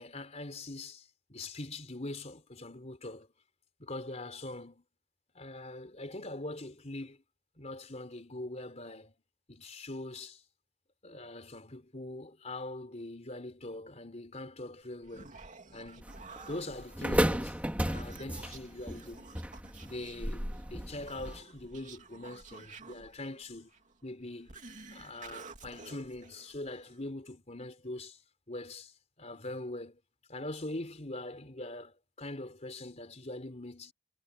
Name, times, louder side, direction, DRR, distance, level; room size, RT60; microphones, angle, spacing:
voice 1, 0.0-3.3 3.8-4.8 5.3-7.2 7.6-9.1 9.5-10.4 11.0-15.4 15.7-16.1 16.5-17.6 17.8-19.3 19.8-23.7 24.0-24.6 24.9-28.2 28.5-30.0 30.3-33.9, left 2 dB, 30° left, 3.8 m, -42 dB
Human voice, 14.8-27.1, right 4 dB, 35° right, 2.9 m, -52 dB
sound 1, 16.0-21.4, equal, 5° right, 2.1 m, -34 dB
head